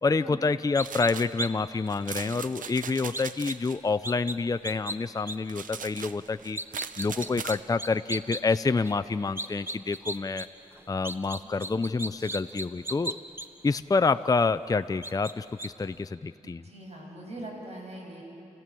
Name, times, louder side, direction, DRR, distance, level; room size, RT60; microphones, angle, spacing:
voice 1, 0.0-6.6 7.0-10.5 10.9-13.2 13.6-16.6, left 4 dB, 25° left, 12 dB, 0.5 m, -27 dB
sound 1, 0.7-1.1 1.4-1.5 1.9-2.0 3.1-3.5 4.0-4.4 4.6-5.0 5.3-5.4 6.4-8.6 8.8-8.9 9.4-10.5 10.7-13.5 14.1-14.2 15.0-15.3 15.6-15.7, right 1 dB, 15° right, 1.1 m, -35 dB
sound 2, 0.8-1.3 1.9-3.8 5.5-7.6, right 7 dB, 80° right, 0.7 m, -39 dB
voice 2, 11.4-11.8 16.4-18.2, right 1 dB, 55° right, -1 dB, 6.8 m, -42 dB
29.5 x 16.0 x 7.6 m, 2.8 s
cardioid pair, 60°, 14 cm